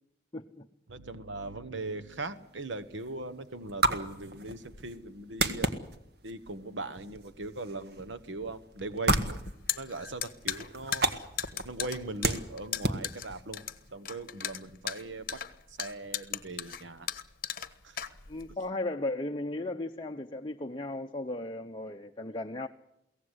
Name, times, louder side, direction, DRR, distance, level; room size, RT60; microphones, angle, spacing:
voice 1, 0.3-0.7 18.3-22.7, left 2 dB, 25° left, 3 dB, 0.9 m, -36 dB
voice 2, 0.9-5.7 6.2-9.4 9.7-11.1 11.6-13.6 13.9-15.4 15.7-17.1 17.8-18.0, right 2 dB, 75° right, 13 dB, 1.2 m, -40 dB
sound 1, 2.1-13.9, right 2 dB, 50° right, 1.7 m, -34 dB
sound 2, 9.3-18.6, left 9 dB, 45° left, 1.3 m, -37 dB
23.0 x 17.5 x 8.1 m, 0.82 s
head